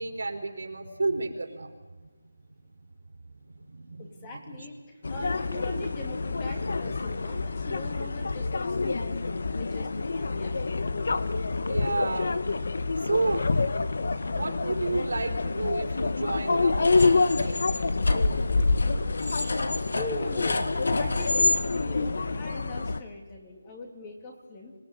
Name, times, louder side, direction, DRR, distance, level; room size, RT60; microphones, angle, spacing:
voice 1, 0.0-2.1 3.1-4.7 11.7-12.4 13.0-13.6 14.3-17.6, right 3 dB, 80° right, 3 dB, 4.4 m, -32 dB
voice 2, 4.0-9.2 9.6-10.6 19.9-24.7, left 2 dB, 20° left, 2 dB, 2.8 m, -41 dB
sound 1, 5.0-23.0, left 3 dB, 60° left, 1.3 m, -28 dB
sound 2, 16.7-21.6, left 3 dB, 75° left, 2.9 m, -27 dB
26.0 x 18.5 x 9.6 m, 1.3 s
figure-of-eight pair, 175°, 0 cm